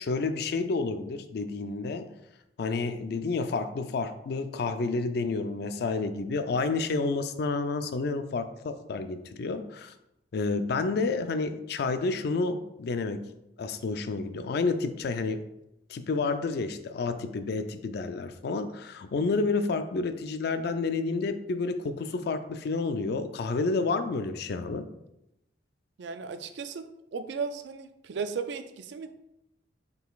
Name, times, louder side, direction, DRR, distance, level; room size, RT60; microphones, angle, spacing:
voice 1, 0.0-2.1 2.6-9.9 10.3-13.3 13.6-15.4 15.9-24.8, left 3 dB, 60° left, 10 dB, 0.4 m, -30 dB
voice 2, 26.0-26.9 27.1-29.1, right 5 dB, 70° right, 10 dB, 0.4 m, -35 dB
5.6 x 3.9 x 2.3 m, 0.87 s
head